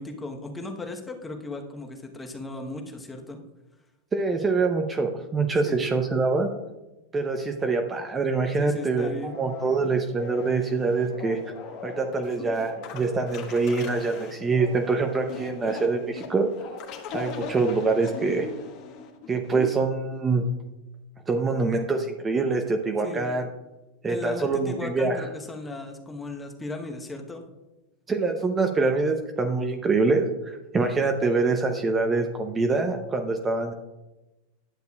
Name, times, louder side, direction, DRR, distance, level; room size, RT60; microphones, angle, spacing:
voice 1, 0.0-3.4 5.6-5.8 8.6-9.3 23.0-23.3 24.1-27.5, left 2 dB, 10° left, 3 dB, 1.0 m, -36 dB
voice 2, 4.1-6.5 7.1-11.4 11.8-16.5 17.1-18.5 19.3-20.4 21.3-23.5 24.0-25.3 28.1-33.7, right 3 dB, 20° right, 5 dB, 0.6 m, -25 dB
sound 1, 9.0-19.8, left 6 dB, 50° left, 1.2 m, -39 dB
10.5 x 6.6 x 2.3 m, 1.0 s
hypercardioid pair, 105°, 0 cm